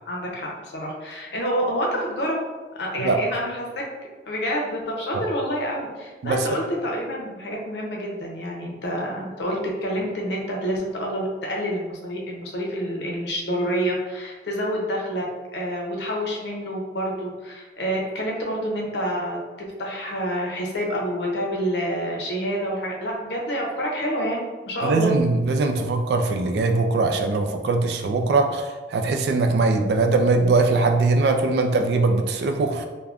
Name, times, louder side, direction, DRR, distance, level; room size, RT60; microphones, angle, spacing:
voice 1, 0.1-2.4 2.8-3.7 4.3-15.2 15.5-25.1, equal, 75° left, -1 dB, 0.6 m, -28 dB
voice 2, 24.8-28.6 28.9-32.9, right 3 dB, 70° right, 6 dB, 0.3 m, -21 dB
3.4 x 2.1 x 2.4 m, 1.3 s
head